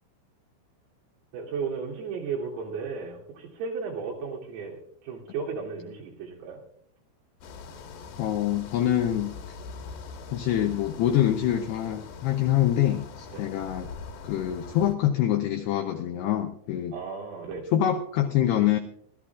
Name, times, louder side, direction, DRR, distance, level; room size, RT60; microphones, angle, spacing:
voice 1, 1.3-6.6 13.3-13.4 16.9-17.7, right 5 dB, 85° right, -3 dB, 5.7 m, -34 dB
sound 1, 7.4-15.0, left 5 dB, 65° left, 3.1 m, -42 dB
voice 2, 8.2-9.3 10.3-13.9 14.2-17.0 17.7-18.8, left 11 dB, 85° left, 5 dB, 2.3 m, -25 dB
24.5 x 13.5 x 2.4 m, 0.67 s
omnidirectional pair, 5.7 m